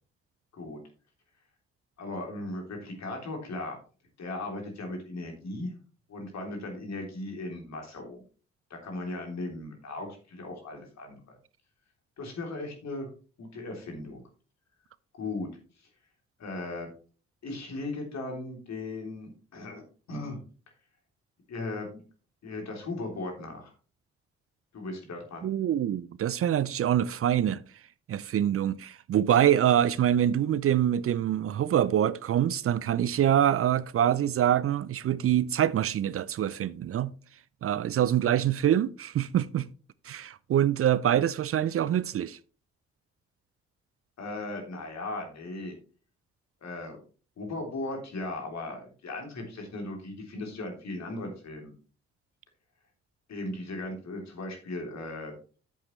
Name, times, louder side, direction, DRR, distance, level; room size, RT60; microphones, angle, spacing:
voice 1, 2.0-3.8 4.2-5.7 6.1-8.2 8.7-11.4 12.2-13.1 13.4-14.2 15.2-15.5 15.8-15.9 16.4-16.9 17.4-19.8 20.1-20.4 21.5-22.0 22.4-23.7 24.7-25.5 44.2-45.7 46.6-47.0 47.4-51.7 53.3-55.3, left 2 dB, 60° left, 3.4 m, -37 dB
voice 2, 25.4-27.6 28.1-37.1 37.6-39.7 40.0-42.4, right 10 dB, 45° right, 0.5 m, -25 dB
10.5 x 7.9 x 3.2 m
hypercardioid pair, 45°, 31 cm